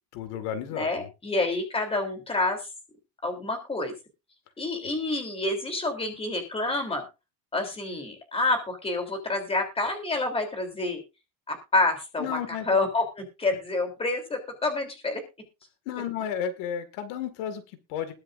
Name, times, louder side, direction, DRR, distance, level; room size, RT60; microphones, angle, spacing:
voice 1, 0.1-1.0 4.8-4.9 12.2-12.7 15.9-18.1, left 8 dB, 85° left, 9 dB, 2.2 m, -33 dB
voice 2, 0.7-2.7 3.2-3.9 4.6-7.0 7.5-11.0 11.5-12.4 12.6-15.2, left 2 dB, 15° left, 5 dB, 3.3 m, -28 dB
20.5 x 7.7 x 2.6 m, 0.28 s
cardioid pair, 170°, 42 cm